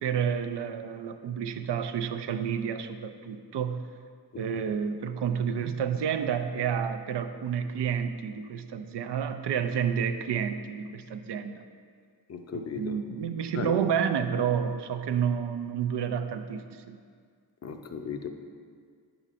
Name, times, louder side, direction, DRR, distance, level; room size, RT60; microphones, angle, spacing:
voice 1, 0.0-3.8 4.4-11.6 12.5-17.0, right 7 dB, 80° right, 8 dB, 0.5 m, -30 dB
voice 2, 12.3-13.0 13.5-13.8 17.6-18.3, left 6 dB, 40° left, 5 dB, 0.6 m, -36 dB
9.5 x 7.0 x 2.5 m, 2.1 s
wide cardioid pair, 80°, 40 cm